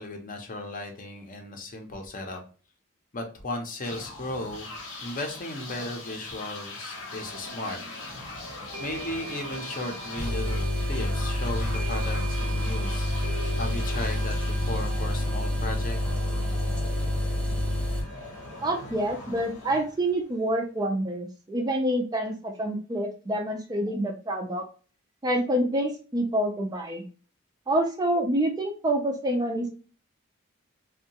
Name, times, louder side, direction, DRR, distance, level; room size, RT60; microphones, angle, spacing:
voice 1, 0.0-2.4 3.1-4.7 5.0-8.2 8.8-13.1 13.6-16.0, left 2 dB, 40° left, 3 dB, 0.6 m, -36 dB
sound 1, 3.8-20.6, left 2 dB, 85° left, 0.9 m, -41 dB
sound 2, 7.7-7.8 8.7-18.8, right 3 dB, 70° right, 0.6 m, -42 dB
sound 3, 10.2-18.0, left 1 dB, 5° left, 0.7 m, -28 dB
voice 2, 18.6-24.6 25.2-27.0 27.7-29.7, right 1 dB, 20° right, 3 dB, 0.3 m, -27 dB
2.6 x 2.2 x 2.7 m, 0.38 s
head